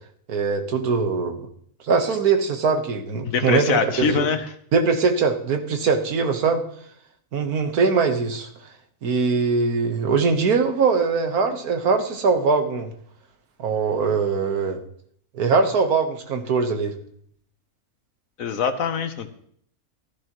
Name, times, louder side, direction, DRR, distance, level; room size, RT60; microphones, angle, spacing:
voice 1, 0.3-1.4 1.9-4.3 4.7-6.6 7.3-8.5 9.0-12.9 13.6-14.8 15.4-16.9, right 5 dB, 90° right, 6 dB, 1.7 m, -21 dB
voice 2, 3.2-4.5 18.4-19.3, left 6 dB, 70° left, 9 dB, 1.3 m, -23 dB
15.0 x 13.5 x 3.0 m, 0.64 s
omnidirectional pair, 1.5 m